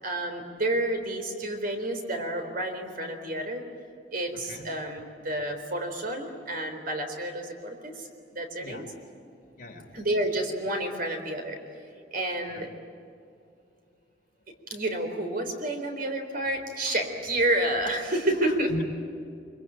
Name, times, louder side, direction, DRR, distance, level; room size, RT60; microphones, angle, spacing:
voice 1, 0.0-3.6 4.1-8.9 9.9-11.6 12.1-12.7 14.7-18.7, right 1 dB, 55° right, 5 dB, 4.0 m, -30 dB
voice 2, 4.3-4.7 8.6-8.9 9.6-9.9 12.5-12.7 18.4-18.8, equal, 50° left, 3 dB, 3.2 m, -38 dB
24.5 x 23.5 x 8.9 m, 2.5 s
head